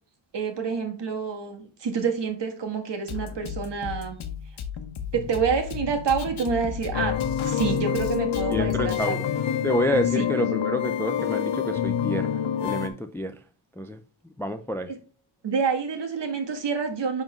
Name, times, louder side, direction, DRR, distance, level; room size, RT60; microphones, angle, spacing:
voice 1, 0.3-4.2 5.1-9.2 10.1-10.3 15.4-17.2, right 6 dB, 60° right, 1.6 m, -28 dB
Drum kit, 3.1-9.1, left 7 dB, 85° left, 0.9 m, -35 dB
sound 1, 6.9-12.9, left 9 dB, 65° left, 0.9 m, -26 dB
voice 2, 8.5-9.3 9.6-13.4 13.8-14.0 14.4-14.9, equal, 5° left, 0.3 m, -29 dB
10.5 x 3.8 x 3.1 m
wide cardioid pair, 135°, 47 cm